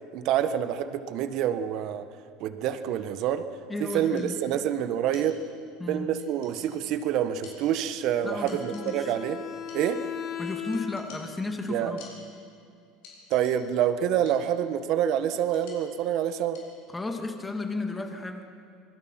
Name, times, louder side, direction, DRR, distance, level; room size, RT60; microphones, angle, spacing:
voice 1, 0.1-2.0 2.4-3.4 3.8-5.4 5.9-9.4 9.7-10.0 11.7-11.9 13.3-16.6, right 10 dB, 60° right, 10 dB, 1.4 m, -27 dB
voice 2, 3.7-4.3 5.8-6.1 8.2-9.1 10.4-12.0 16.9-18.5, left 2 dB, 15° left, 4 dB, 2.6 m, -33 dB
sound 1, 3.9-4.7 5.1-5.8 6.2-7.0 7.4-8.2 8.5-9.3 9.7-10.2 10.7-12.7 13.0-13.9 14.2-14.7 15.3-17.1, left 4 dB, 75° left, 4.9 m, -53 dB
Bowed string instrument, 8.2-11.3, left 10 dB, 40° left, 2.2 m, -38 dB
26.5 x 20.5 x 5.9 m, 2.4 s
supercardioid pair, 110°, 0 cm